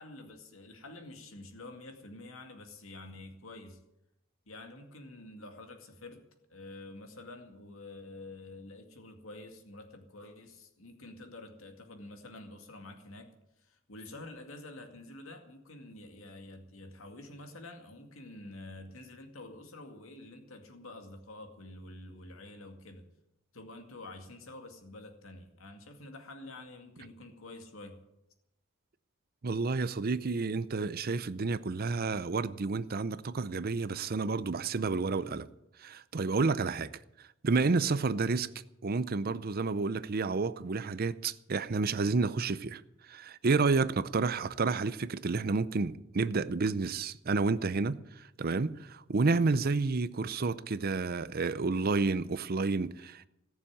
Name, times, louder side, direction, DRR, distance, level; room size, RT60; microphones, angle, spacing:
voice 1, 0.0-3.8 4.5-6.2 6.5-23.1 23.5-28.0, left 2 dB, 80° left, 2.2 m, -48 dB
voice 2, 29.4-35.5 35.8-36.9 37.4-38.5 38.8-42.8 43.1-53.3, right 4 dB, 45° right, 0.6 m, -30 dB
18.0 x 7.1 x 9.9 m
head